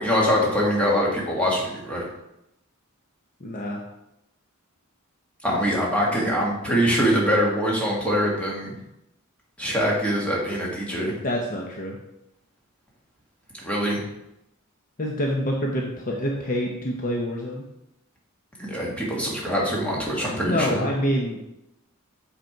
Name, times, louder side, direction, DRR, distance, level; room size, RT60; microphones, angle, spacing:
voice 1, 0.0-2.1 5.4-8.7 9.6-11.1 13.6-14.0 18.6-20.8, equal, 5° left, -4 dB, 1.7 m, -23 dB
voice 2, 3.4-3.8 11.2-12.0 15.0-17.7 20.4-21.5, equal, 40° left, -1 dB, 0.8 m, -26 dB
7.8 x 4.4 x 4.5 m, 0.87 s
head